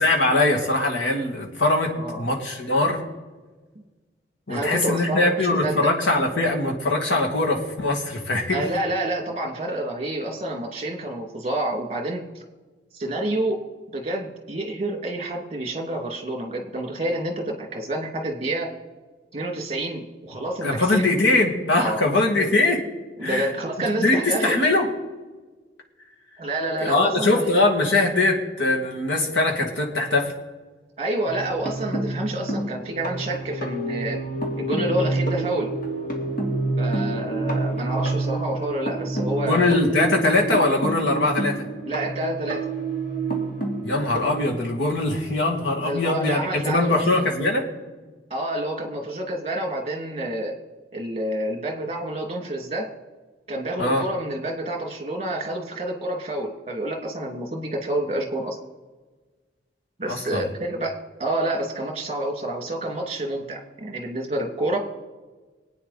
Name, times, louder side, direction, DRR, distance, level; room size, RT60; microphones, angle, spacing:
voice 1, 0.0-3.0 4.5-8.6 20.6-22.8 23.2-23.5 24.0-24.9 26.8-30.3 39.4-41.6 43.8-47.7 53.8-54.0 60.1-60.4, left 2 dB, 85° left, 0 dB, 2.5 m, -22 dB
voice 2, 4.5-5.8 8.5-12.4 12.9-13.6 13.9-18.7 19.3-21.0 21.7-22.0 23.2-24.6 26.4-27.5 31.0-34.2 34.6-35.7 36.8-39.7 41.8-42.7 45.8-47.3 48.3-50.5 50.9-52.9 53.5-58.6 60.0-64.8, right 1 dB, 35° right, 3 dB, 2.6 m, -28 dB
sound 1, 31.3-45.2 46.5-46.6 46.9-47.1, right 2 dB, 50° left, 2.6 m, -28 dB
24.5 x 9.1 x 4.3 m, 1.3 s
head